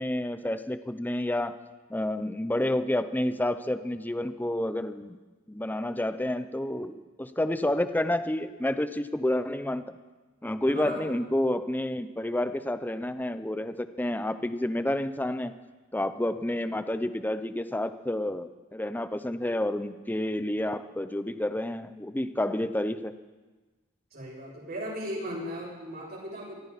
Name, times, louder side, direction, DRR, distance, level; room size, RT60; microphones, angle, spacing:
voice 1, 0.0-1.6 1.9-5.2 5.5-9.9 10.4-15.5 15.9-23.1, left 1 dB, 10° left, 11 dB, 0.6 m, -29 dB
voice 2, 24.1-26.6, equal, 50° right, -4 dB, 6.8 m, -37 dB
23.5 x 14.0 x 4.1 m, 1.3 s
head